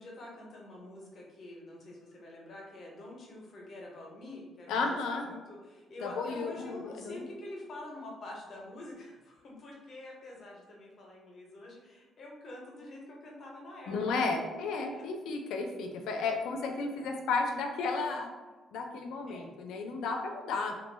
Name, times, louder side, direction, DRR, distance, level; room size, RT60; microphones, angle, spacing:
voice 1, 0.0-14.2 14.9-15.0 19.3-19.5, left 1 dB, 40° left, -2 dB, 0.6 m, -47 dB
voice 2, 4.7-5.3 6.0-7.3 13.9-18.3 18.7-20.8, left 4 dB, 85° left, 3 dB, 0.4 m, -33 dB
2.2 x 2.1 x 3.1 m, 1.2 s
cardioid pair, 165°, 0 cm